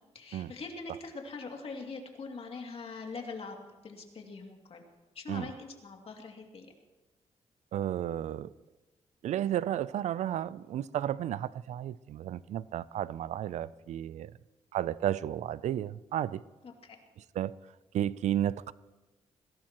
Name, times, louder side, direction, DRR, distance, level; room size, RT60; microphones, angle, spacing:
voice 1, 0.1-3.6 3.8-4.8 5.1-6.7 16.6-17.0, left 4 dB, 55° left, 2.5 m, -43 dB
voice 2, 7.7-8.5 9.2-14.3 14.7-16.4 17.3-17.5 17.9-18.7, right 11 dB, 85° right, 0.4 m, -32 dB
21.0 x 17.5 x 3.0 m
cardioid pair, 90°, 12 cm